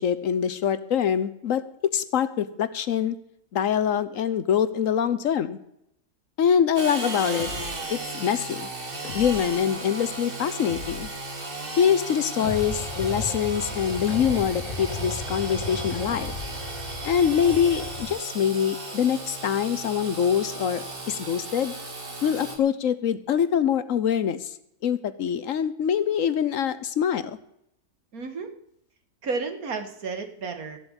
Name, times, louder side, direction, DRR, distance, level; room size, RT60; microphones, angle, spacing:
voice 1, 0.0-1.6 1.9-3.2 3.5-5.6 6.4-7.5 7.9-8.7 9.1-11.1 11.8-16.3 17.0-21.7 22.2-24.5 24.8-27.4, left 8 dB, 65° left, 14 dB, 1.1 m, -24 dB
Engine / Sawing, 6.8-22.6, right 2 dB, 40° right, 2.1 m, -36 dB
sound 1, 7.3-8.0 9.0-9.7 10.6-11.3 12.4-13.0 14.1-14.8 16.1-16.7, left 8 dB, 80° left, 1.4 m, -40 dB
sound 2, 12.4-18.1, left 2 dB, 45° left, 2.2 m, -36 dB
voice 2, 28.1-28.5 29.2-30.8, right 4 dB, 75° right, 6 dB, 2.1 m, -32 dB
14.5 x 7.9 x 8.9 m, 0.77 s
omnidirectional pair, 1.6 m